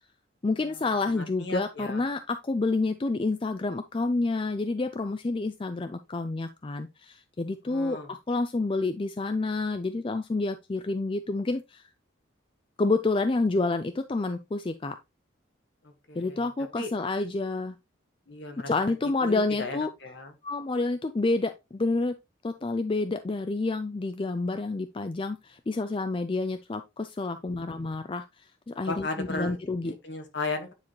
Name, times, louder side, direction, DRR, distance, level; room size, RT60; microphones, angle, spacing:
voice 1, 0.4-11.9 12.8-15.0 16.2-17.8 18.7-19.9 20.4-22.1 22.4-29.9, left 3 dB, 25° left, 0.4 m, -29 dB
voice 2, 1.1-2.0 7.6-8.1 16.1-16.5 16.8-16.9 18.3-18.7 19.2-20.3 27.6-27.9 28.9-30.7, left 2 dB, 55° left, 1.7 m, -36 dB
9.7 x 4.4 x 3.0 m
head